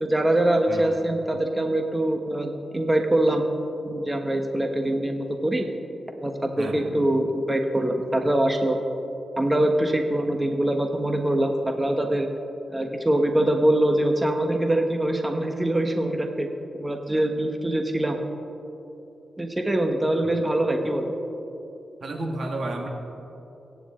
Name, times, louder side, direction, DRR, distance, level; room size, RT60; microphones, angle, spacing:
voice 1, 0.0-3.5 3.8-5.6 6.2-8.8 9.4-12.3 12.7-16.5 16.7-18.2 19.4-21.2, right 1 dB, 20° right, 4 dB, 1.3 m, -23 dB
voice 2, 22.0-22.9, right 2 dB, 65° right, 2 dB, 1.9 m, -31 dB
23.5 x 9.8 x 3.8 m, 2.9 s
cardioid pair, 60°, 0 cm